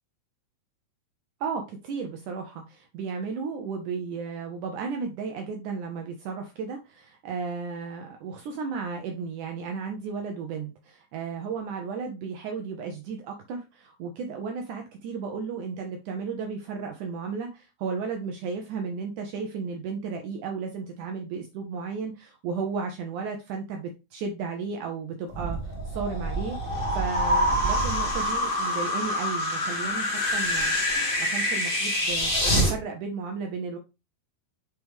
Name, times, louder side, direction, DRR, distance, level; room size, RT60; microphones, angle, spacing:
voice 1, 1.4-26.6 26.9-33.8, right 5 dB, 80° right, 4 dB, 1.8 m, -34 dB
sound 1, 25.3-32.7, equal, 25° left, 1.2 m, -26 dB
6.8 x 4.6 x 3.4 m, 0.27 s
omnidirectional pair, 4.4 m